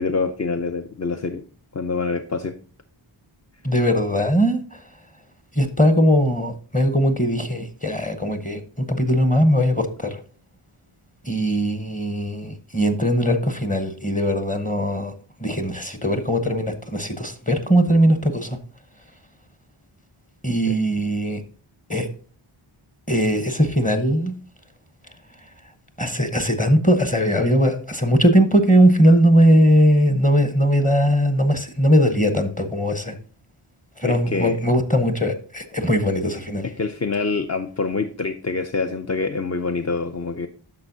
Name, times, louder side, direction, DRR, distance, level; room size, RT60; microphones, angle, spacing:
voice 1, 0.0-1.4 1.7-2.6 20.7-20.8 34.1-34.6 36.8-40.5, left 4 dB, 35° left, 0.5 m, -26 dB
voice 2, 3.6-4.8 5.5-10.2 11.2-15.1 15.4-18.6 20.4-21.4 21.9-22.1 23.1-24.4 26.0-33.2 34.0-36.7, equal, 15° left, 0.9 m, -19 dB
10.5 x 6.5 x 2.7 m
wide cardioid pair, 65°, 50 cm